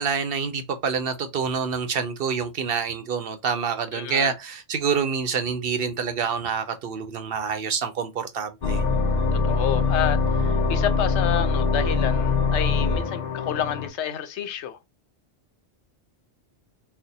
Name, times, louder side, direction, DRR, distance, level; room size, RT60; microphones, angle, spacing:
voice 1, 0.0-8.8, right 6 dB, 60° right, 0.7 m, -27 dB
voice 2, 3.9-4.3 9.3-14.8, left 9 dB, 75° left, 0.9 m, -29 dB
sound 1, 8.6-13.9, left 4 dB, 45° left, 0.6 m, -23 dB
4.2 x 2.1 x 3.9 m
omnidirectional pair, 1.2 m